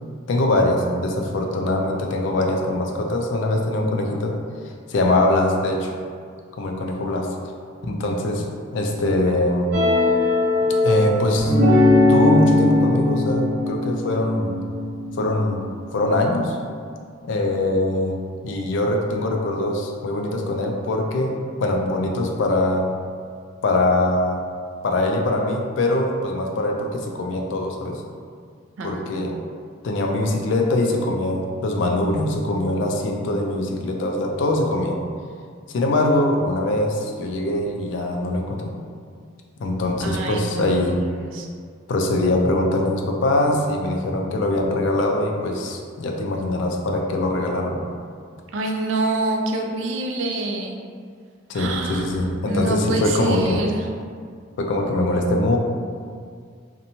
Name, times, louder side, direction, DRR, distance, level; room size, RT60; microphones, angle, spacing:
voice 1, 0.3-4.4 4.9-5.9 6.6-7.3 7.8-8.5 8.7-9.7 10.8-11.5 12.1-14.5 15.2-15.6 15.9-16.6 17.2-18.2 18.4-22.9 23.6-24.4 24.8-28.0 28.8-29.4 29.8-34.9 35.7-38.7 39.6-41.0 41.9-47.8 51.5-53.6 54.6-55.6, left 1 dB, 65° left, 2 dB, 0.3 m, -22 dB
sound 1, 9.7-15.8, left 2 dB, 55° right, 0.8 m, -19 dB
voice 2, 28.8-29.4 40.0-41.5 48.5-50.8 51.5-52.1 52.5-53.8, right 2 dB, 70° right, 2 dB, 0.3 m, -26 dB
2.8 x 2.1 x 2.6 m, 2.1 s
head